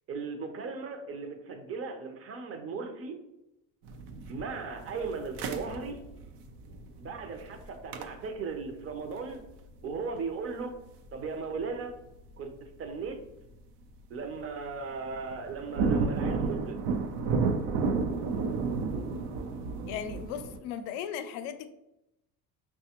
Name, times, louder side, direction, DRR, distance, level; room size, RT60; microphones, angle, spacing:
voice 1, 0.1-3.2 4.3-6.0 7.0-9.4 9.8-10.8 11.1-11.9 12.4-13.2 14.1-16.8, right 4 dB, 35° right, 5 dB, 0.6 m, -37 dB
sound 1, 3.8-11.9 12.1-12.3 12.9-13.2 13.6-14.0 14.3-14.4 14.7-20.6, right 4 dB, 75° right, 0.6 m, -32 dB
voice 2, 19.9-21.7, left 8 dB, 75° left, 10 dB, 0.5 m, -37 dB
5.5 x 2.3 x 2.9 m, 0.90 s
supercardioid pair, 95°, 42 cm